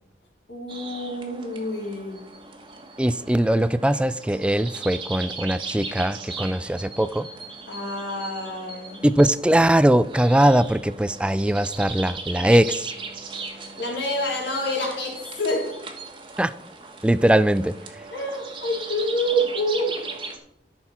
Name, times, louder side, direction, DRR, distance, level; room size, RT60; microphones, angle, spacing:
voice 1, 0.5-2.2 7.7-9.0 13.8-15.8 18.1-20.1, equal, 80° left, 3.7 m, -27 dB
sound 1, 0.7-20.4, right 3 dB, 25° right, 1.4 m, -38 dB
voice 2, 3.0-7.3 9.0-12.9 16.4-16.5 17.0-18.0, right 1 dB, 5° right, 0.3 m, -21 dB
13.0 x 6.1 x 4.3 m
head